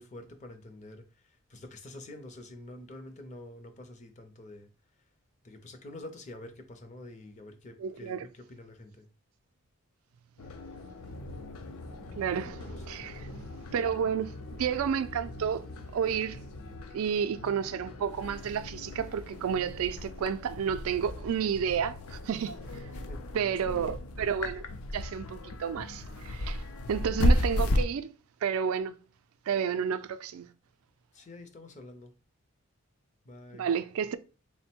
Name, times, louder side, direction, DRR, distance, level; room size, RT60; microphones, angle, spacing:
voice 1, 0.0-4.7 5.4-9.1 12.6-12.9 22.9-24.0 31.1-32.1 33.2-33.7, left 1 dB, 35° left, 0.5 m, -47 dB
voice 2, 7.8-8.2 12.2-13.3 13.7-14.3 14.6-15.6 15.9-16.4 16.9-22.6 23.3-24.7 24.9-26.6 26.9-28.1 28.4-29.0 29.5-30.5 33.5-34.2, right 7 dB, 75° right, 0.3 m, -31 dB
sound 1, 10.4-27.8, left 1 dB, 80° left, 0.5 m, -35 dB
sound 2, 11.0-16.8, left 1 dB, 60° left, 0.8 m, -46 dB
3.7 x 2.1 x 4.3 m
head